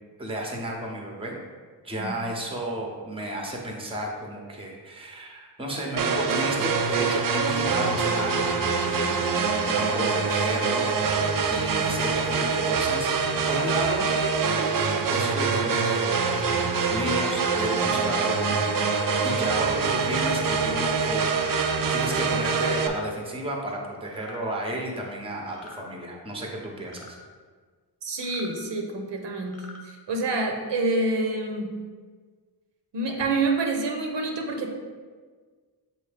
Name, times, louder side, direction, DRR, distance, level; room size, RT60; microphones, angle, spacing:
voice 1, 0.2-1.4 1.8-9.1 9.6-14.1 15.1-18.7 19.2-21.6 21.9-27.2, right 1 dB, 15° right, 0 dB, 0.8 m, -33 dB
sound 1, 6.0-22.9, right 5 dB, 55° right, 0.5 m, -25 dB
sound 2, 20.1-20.3 21.3-21.7 22.7-23.0 24.1-24.4 25.5-25.8 26.9-27.1 28.2-28.5 29.4-29.8, left 3 dB, 35° left, 0.7 m, -46 dB
voice 2, 28.0-31.7 32.9-34.7, right 2 dB, 85° right, 2 dB, 0.9 m, -27 dB
7.0 x 2.7 x 5.0 m, 1.5 s
wide cardioid pair, 170°, 41 cm